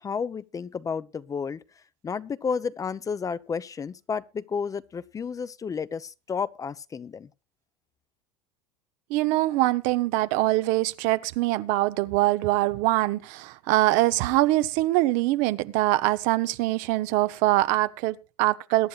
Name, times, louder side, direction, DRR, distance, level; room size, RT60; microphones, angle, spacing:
voice 1, 0.0-1.6 2.0-7.3, left 6 dB, 25° left, 0.7 m, -31 dB
voice 2, 9.1-18.9, right 17 dB, 65° right, 1.0 m, -23 dB
22.5 x 10.5 x 2.4 m
supercardioid pair, 105°, 14 cm